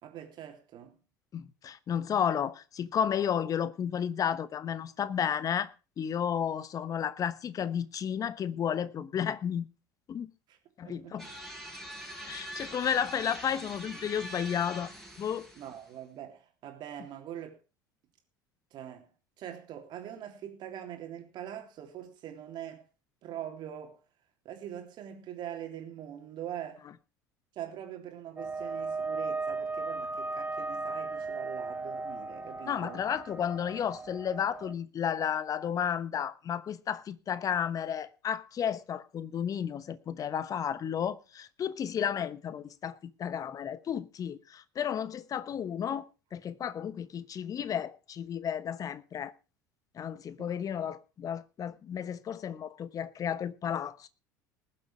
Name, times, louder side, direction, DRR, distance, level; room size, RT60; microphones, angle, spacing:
voice 1, 0.0-1.0 10.5-10.6 10.8-11.2 12.6-12.7 15.5-17.5 18.7-19.1 19.4-22.9 23.2-24.0 24.4-26.8 27.5-33.0 50.4-50.5, right 10 dB, 45° right, 3.3 m, -43 dB
voice 2, 1.3-5.7 6.0-9.7 10.1-10.3 10.8-11.3 12.3-14.9 15.2-15.5 32.7-46.0 46.3-49.3 49.9-54.1, left 8 dB, 35° left, 1.1 m, -32 dB
sound 1, 11.2-15.9, equal, 5° left, 5.7 m, -44 dB
sound 2, 28.4-34.7, right 3 dB, 15° right, 1.2 m, -36 dB
20.0 x 7.8 x 4.7 m
figure-of-eight pair, 65°, 10 cm